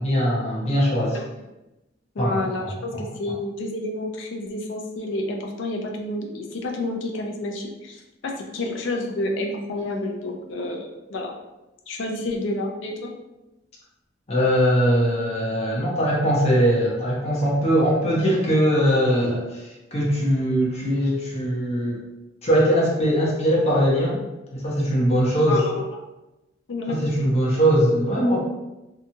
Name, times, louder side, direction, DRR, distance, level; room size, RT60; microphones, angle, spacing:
voice 1, 0.0-1.2 2.2-3.1 14.3-22.0 22.4-24.2 24.5-25.6 26.9-28.4, equal, 35° left, -4 dB, 0.7 m, -21 dB
voice 2, 2.2-11.3 11.9-13.1 25.5-25.8 26.7-27.0, left 2 dB, 85° left, 1 dB, 0.4 m, -29 dB
2.8 x 2.3 x 2.6 m, 0.99 s
head